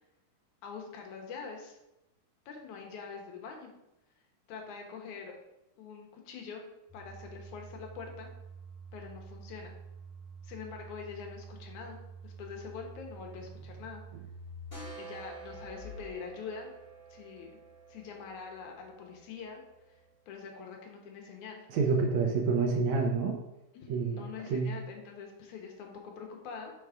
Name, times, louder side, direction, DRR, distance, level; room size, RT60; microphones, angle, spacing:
voice 1, 0.6-1.8 2.5-3.7 4.5-5.4 5.8-6.7 6.9-8.3 8.9-9.7 10.4-14.0 15.0-16.7 17.1-17.5 17.9-19.6 20.3-21.7 23.7-26.7, left 5 dB, 75° left, 1 dB, 2.3 m, -44 dB
sound 1, 6.9-16.1, right 3 dB, 45° left, 1.3 m, -48 dB
sound 2, 14.7-20.2, right 4 dB, 20° left, 2.1 m, -50 dB
voice 2, 21.7-23.4 23.9-24.2 24.5-24.7, right 4 dB, 70° right, 2 dB, 1.9 m, -28 dB
5.7 x 4.6 x 4.9 m, 0.92 s
omnidirectional pair, 3.7 m